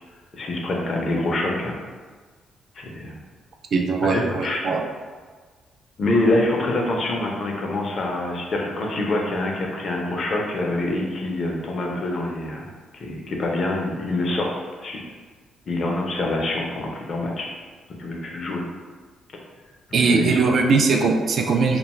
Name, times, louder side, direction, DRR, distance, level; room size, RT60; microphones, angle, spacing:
voice 1, 0.3-1.7 2.8-3.1 4.0-4.6 6.0-14.5 14.8-15.0 15.7-17.5 18.0-18.6 19.9-20.4, left 2 dB, 50° left, 0 dB, 0.5 m, -25 dB
voice 2, 3.7-4.8 19.9-21.8, right 4 dB, 60° right, 3 dB, 0.3 m, -20 dB
2.4 x 2.2 x 2.9 m, 1.4 s
cardioid pair, 90°, 0 cm